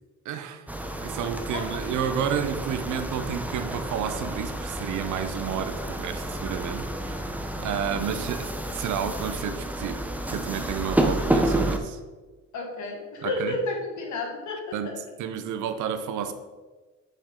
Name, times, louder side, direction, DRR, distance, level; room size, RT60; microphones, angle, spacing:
voice 1, 0.2-0.7 1.0-7.3 7.6-12.0 13.2-13.6 14.7-16.3, right 8 dB, 80° right, 9 dB, 0.8 m, -31 dB
sound 1, 0.7-11.8, right 1 dB, 5° right, 0.7 m, -30 dB
voice 2, 12.5-14.7, left 2 dB, 75° left, 1 dB, 1.8 m, -31 dB
7.4 x 5.5 x 3.7 m, 1.3 s
cardioid pair, 90°, 30 cm